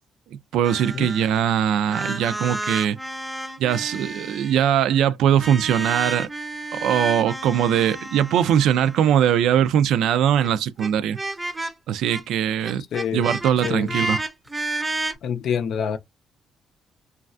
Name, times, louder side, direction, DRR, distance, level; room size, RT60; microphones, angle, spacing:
voice 1, 0.5-3.0 3.6-6.3 6.7-11.2 11.9-12.8 13.1-14.2, right 9 dB, 85° right, 0.3 m, -21 dB
sound 1, 0.6-1.5 1.7-4.7 5.4-9.6 10.4-10.5 10.8-10.9 11.1-11.7 12.1-12.2 12.6-15.1, right 2 dB, 15° right, 0.6 m, -31 dB
voice 2, 12.9-13.3 13.6-14.0 15.2-16.0, left 7 dB, 70° left, 0.5 m, -26 dB
3.1 x 2.3 x 2.5 m
cardioid pair, 90°, 0 cm